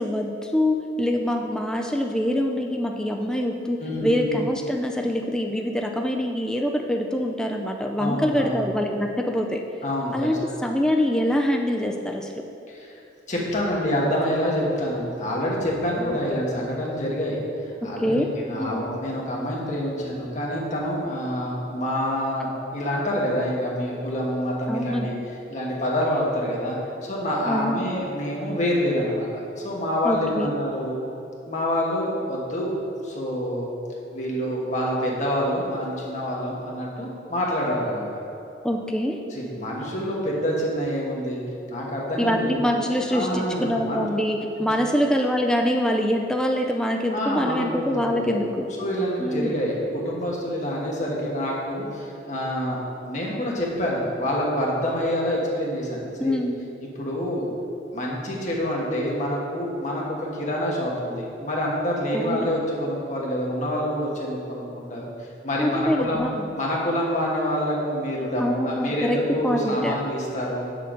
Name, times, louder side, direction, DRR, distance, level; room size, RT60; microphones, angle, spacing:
voice 1, 0.0-9.6 10.1-12.3 16.0-16.2 18.0-18.8 24.7-25.1 27.5-27.9 30.0-30.5 38.6-39.2 42.2-48.7 49.2-49.5 56.2-56.6 62.1-62.5 65.6-66.5 68.4-69.2 69.4-70.0, equal, 5° left, 2 dB, 0.3 m, -25 dB
voice 2, 3.8-4.4 8.0-8.6 9.8-10.3 12.7-12.9 13.3-17.4 17.8-25.1 25.5-31.0 31.5-32.7 33.0-33.7 34.1-38.2 39.3-41.4 41.7-42.7 43.1-44.0 44.6-44.7 47.1-48.5 48.8-52.8 53.1-56.4 57.0-57.4 57.9-66.3 66.6-70.7, equal, 40° left, -3 dB, 1.3 m, -27 dB
6.8 x 6.6 x 3.8 m, 2.8 s
head